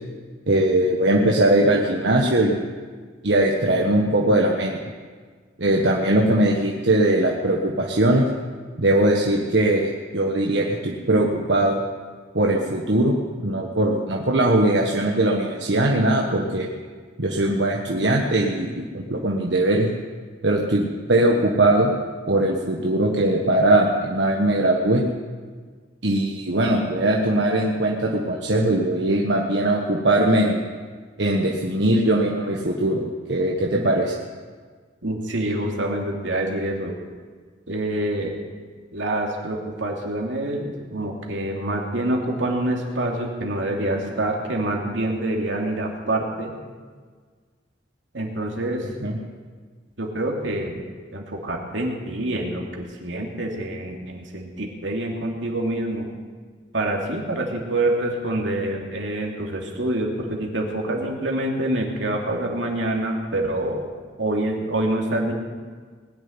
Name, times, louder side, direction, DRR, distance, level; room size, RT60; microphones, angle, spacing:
voice 1, 0.5-2.7 3.2-4.8 5.6-8.2 8.8-11.8 12.3-13.1 13.4-16.7 17.2-19.9 20.4-21.9 22.3-25.0 26.0-30.6 31.2-33.0 33.3-34.1 49.0-49.1, right 1 dB, 70° right, -1 dB, 1.4 m, -20 dB
voice 2, 35.0-36.9 37.7-38.3 38.9-46.5 48.1-48.9 50.0-50.8 51.1-56.1 56.7-63.8 64.2-65.3, right 1 dB, 85° right, 0 dB, 2.8 m, -26 dB
20.5 x 6.9 x 9.9 m, 1.5 s
head